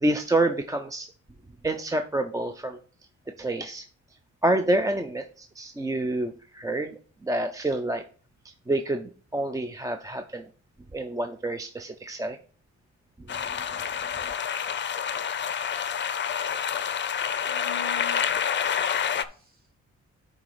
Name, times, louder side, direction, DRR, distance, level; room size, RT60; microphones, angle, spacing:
voice 1, 0.0-1.1 1.6-2.8 3.4-3.9 4.4-6.9 7.2-8.0 8.7-10.5 10.9-12.4 13.3-13.4, right 1 dB, 10° right, 7 dB, 0.4 m, -28 dB
sound 1, 13.3-19.3, left 8 dB, 40° left, 0.5 m, -28 dB
voice 2, 16.5-17.1 17.4-18.7 19.2-19.7, left 7 dB, 30° right, 0 dB, 2.7 m, -46 dB
9.2 x 3.8 x 4.8 m, 0.41 s
cardioid pair, 125°, 29 cm